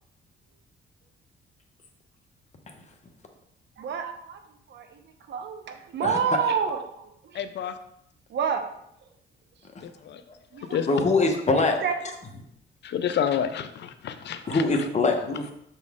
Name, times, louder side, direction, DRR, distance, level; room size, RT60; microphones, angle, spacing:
voice 1, 3.8-4.4 4.7-5.0 5.3-7.4 8.3-8.7 10.5-10.8 11.8-11.9 14.4-14.6, right 6 dB, 65° right, 6 dB, 0.9 m, -29 dB
voice 2, 7.3-7.8 9.8-10.2 10.7-10.9 12.8-14.6, left 8 dB, 60° left, 11 dB, 0.5 m, -29 dB
voice 3, 10.9-11.8 14.5-15.5, left 3 dB, 35° left, 4 dB, 1.1 m, -23 dB
6.9 x 4.3 x 3.6 m, 0.75 s
cardioid pair, 90°, 20 cm